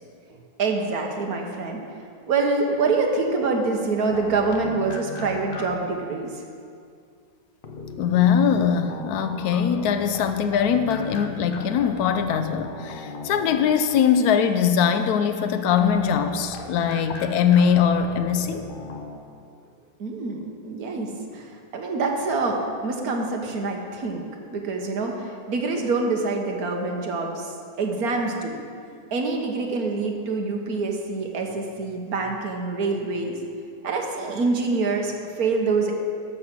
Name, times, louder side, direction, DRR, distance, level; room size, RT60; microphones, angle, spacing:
voice 1, 0.3-1.8 2.3-6.3 16.8-17.0 20.0-22.6 22.8-28.6 29.1-33.4 33.8-35.9, right 3 dB, 60° right, 1 dB, 1.6 m, -26 dB
sound 1, 4.1-6.0 7.6-14.0 15.7-19.2, left 4 dB, 40° left, 0.9 m, -38 dB
voice 2, 8.0-18.6, left 7 dB, 70° left, 9 dB, 1.1 m, -21 dB
13.5 x 5.7 x 6.0 m, 2.3 s
omnidirectional pair, 1.8 m